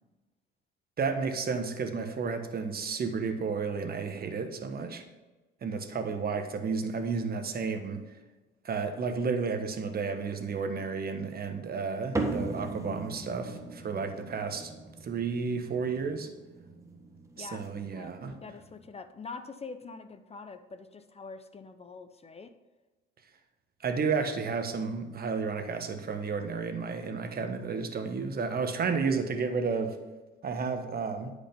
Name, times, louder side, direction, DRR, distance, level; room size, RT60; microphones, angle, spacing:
voice 1, 1.0-5.0 5.6-8.0 8.6-14.7 15.0-16.3 17.4-18.4 23.8-30.0 30.4-31.3, right 5 dB, 45° right, 7 dB, 1.3 m, -32 dB
sound 1, 12.2-18.9, right 2 dB, 15° right, 1.5 m, -39 dB
voice 2, 17.9-22.5, left 4 dB, 30° left, 10 dB, 0.7 m, -45 dB
10.5 x 5.1 x 5.3 m, 1.2 s
supercardioid pair, 75°, 21 cm